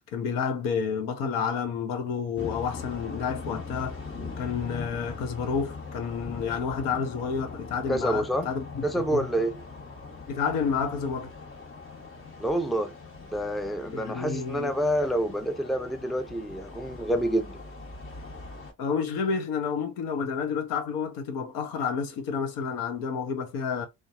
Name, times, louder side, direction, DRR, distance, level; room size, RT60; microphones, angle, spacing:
voice 1, 0.0-4.0 4.4-9.3 10.3-11.3 13.9-14.8 18.8-23.9, left 6 dB, 75° left, 0.8 m, -30 dB
sound 1, 2.4-18.7, left 4 dB, 40° left, 1.3 m, -41 dB
voice 2, 7.9-8.5 8.8-9.6 12.4-12.9 13.3-17.6, right 1 dB, ahead, 0.5 m, -28 dB
2.6 x 2.3 x 2.3 m
hypercardioid pair, 60°, 34 cm